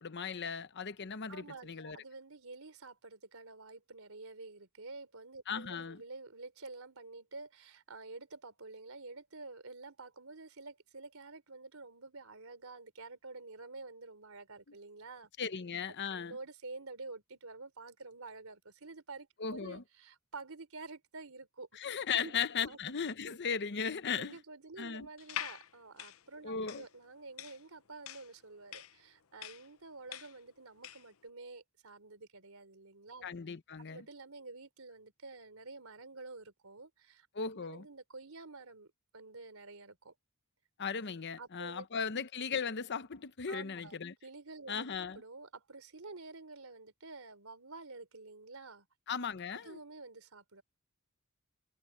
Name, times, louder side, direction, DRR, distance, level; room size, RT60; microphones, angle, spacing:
voice 1, 0.0-2.0 5.5-6.0 15.4-16.4 19.4-19.8 21.7-24.4 24.8-25.1 26.4-26.8 33.2-34.0 37.3-37.9 40.8-44.1 44.7-45.2 49.1-49.8, left 6 dB, 55° left, 0.8 m, -37 dB
voice 2, 1.3-15.3 16.1-21.8 22.1-22.3 22.6-22.8 24.2-33.3 33.8-37.3 37.5-40.1 41.4-41.9 43.5-48.9 49.5-50.6, right 3 dB, 85° right, 3.4 m, -49 dB
sound 1, 25.2-31.1, left 11 dB, 80° left, 0.9 m, -45 dB
head